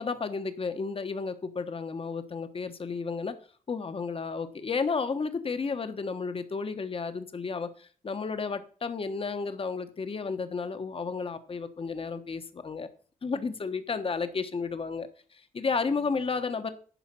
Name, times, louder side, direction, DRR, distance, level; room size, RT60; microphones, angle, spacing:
voice 1, 0.0-3.3 3.7-12.9 13.2-16.7, left 4 dB, 40° left, 1.2 m, -32 dB
11.0 x 5.0 x 7.4 m
cardioid pair, 85°, 14 cm